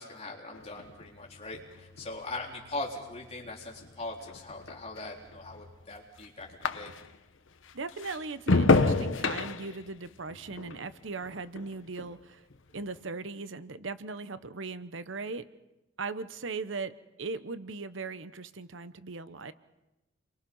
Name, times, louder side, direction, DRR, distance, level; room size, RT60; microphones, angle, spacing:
voice 1, 0.0-6.9, left 2 dB, 30° left, -1 dB, 3.9 m, -40 dB
sound 1, 0.5-7.3 7.6-12.2 12.5-13.0, left 3 dB, 75° left, 1.0 m, -31 dB
voice 2, 7.7-12.4 12.7-15.4 16.0-16.9 17.2-19.5, right 4 dB, 70° right, 13 dB, 0.9 m, -38 dB
29.5 x 23.5 x 5.5 m, 0.98 s
head